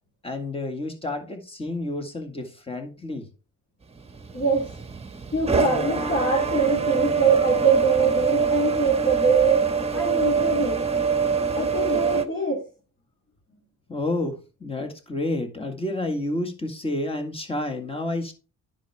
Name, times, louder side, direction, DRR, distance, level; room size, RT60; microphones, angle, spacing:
voice 1, 0.2-3.3 13.9-18.3, left 2 dB, 20° left, 1.9 m, -30 dB
sound 1, 4.0-12.2, right 5 dB, 20° right, 1.1 m, -24 dB
voice 2, 4.3-4.7 5.3-10.8 11.5-12.7, right 4 dB, 40° left, 3.0 m, -23 dB
10.0 x 6.1 x 3.5 m
cardioid pair, 90°, 30 cm